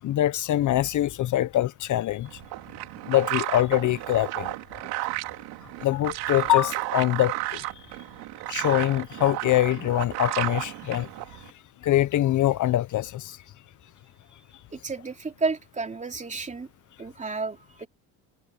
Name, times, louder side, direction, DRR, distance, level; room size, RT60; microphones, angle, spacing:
voice 1, 0.0-2.3 3.1-4.5 5.8-7.6 8.5-11.1 11.8-13.4, left 14 dB, 50° left, 1.0 m, -24 dB
sound 1, 2.3-11.5, right 18 dB, 70° right, 3.1 m, -33 dB
voice 2, 14.7-16.7 17.0-17.9, right 4 dB, 20° right, 3.4 m, -31 dB
supercardioid pair, 100°, 39 cm